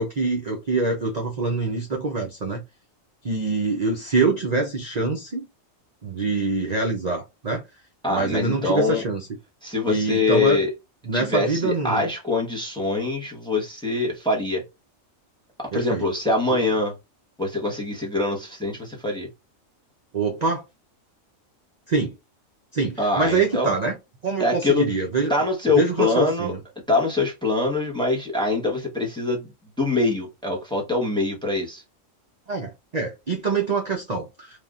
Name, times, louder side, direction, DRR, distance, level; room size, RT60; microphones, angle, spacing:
voice 1, 0.0-2.6 3.2-5.5 6.0-7.6 8.1-9.3 9.9-10.6 11.0-12.0 15.7-16.1 16.5-16.6 20.1-20.6 21.9-22.2 22.7-24.0 24.2-25.3 25.7-26.6 32.5-34.6, right 3 dB, 40° right, 0.6 m, -25 dB
voice 2, 8.0-9.0 9.6-10.7 11.1-14.6 15.6-16.9 17.4-19.3 23.0-23.7 24.4-24.8 25.3-26.5 26.9-29.5 29.8-31.8, left 2 dB, 5° left, 0.8 m, -24 dB
3.5 x 2.5 x 2.3 m
omnidirectional pair, 1.4 m